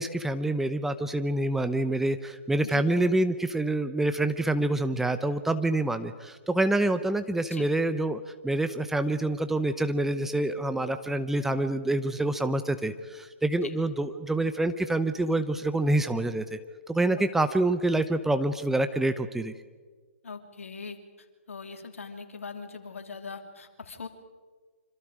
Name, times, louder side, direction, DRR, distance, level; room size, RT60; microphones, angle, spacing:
voice 1, 0.0-16.6 16.9-19.5, right 2 dB, 5° right, 10 dB, 0.9 m, -27 dB
voice 2, 20.2-24.1, left 4 dB, 80° left, 5 dB, 3.3 m, -41 dB
26.5 x 26.0 x 5.1 m, 1.5 s
hypercardioid pair, 130°, 7 cm